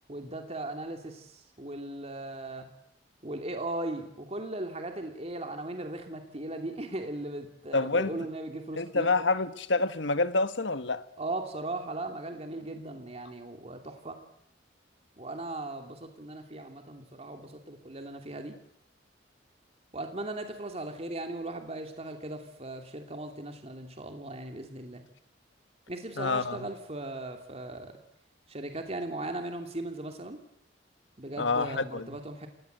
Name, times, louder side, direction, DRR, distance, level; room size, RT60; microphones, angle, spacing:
voice 1, 0.1-2.7 3.2-9.1 11.2-14.2 15.2-18.6 19.9-25.0 25.9-27.9 28.5-30.4 31.2-32.5, right 2 dB, 35° right, 2.7 m, -38 dB
voice 2, 7.7-8.2 8.8-11.0 26.2-26.7 31.4-32.1, left 3 dB, 85° left, 1.5 m, -27 dB
28.5 x 18.5 x 8.1 m
head